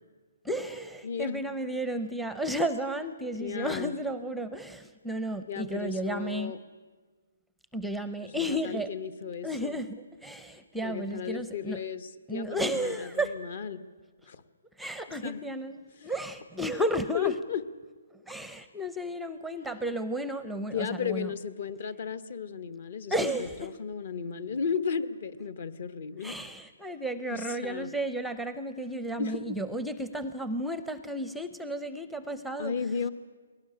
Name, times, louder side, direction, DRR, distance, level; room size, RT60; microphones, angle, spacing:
voice 1, 0.4-6.5 7.7-8.9 9.4-11.8 12.3-13.4 14.8-17.3 18.3-21.3 23.1-23.7 26.2-32.7, right 1 dB, ahead, 12 dB, 0.6 m, -33 dB
voice 2, 1.0-1.4 3.4-3.9 5.5-6.6 8.2-9.7 10.8-13.8 14.3-14.4 15.2-15.4 17.1-17.6 20.7-23.1 23.6-26.4 27.3-27.9 29.2-29.6 32.6-33.1, left 6 dB, 50° left, 15 dB, 1.2 m, -34 dB
21.5 x 18.0 x 10.0 m, 1.5 s
hypercardioid pair, 160°, 0 cm